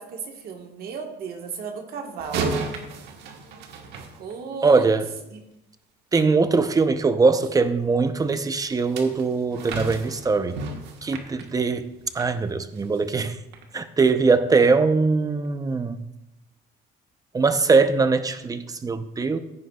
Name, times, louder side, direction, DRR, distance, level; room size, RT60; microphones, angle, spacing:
voice 1, 0.0-2.5 4.2-4.9 5.3-5.4, right 6 dB, 65° right, 3 dB, 1.5 m, -35 dB
sound 1, 2.2-4.8 8.6-12.3 12.8-13.0 13.5-13.6, right 4 dB, 80° right, 1.4 m, -33 dB
voice 2, 4.6-5.1 6.1-10.6 11.0-11.9 12.1-13.4 13.7-16.0 17.3-19.4, right 4 dB, 20° right, 10 dB, 0.7 m, -21 dB
15.0 x 9.5 x 2.4 m, 0.91 s
cardioid pair, 110°, 17 cm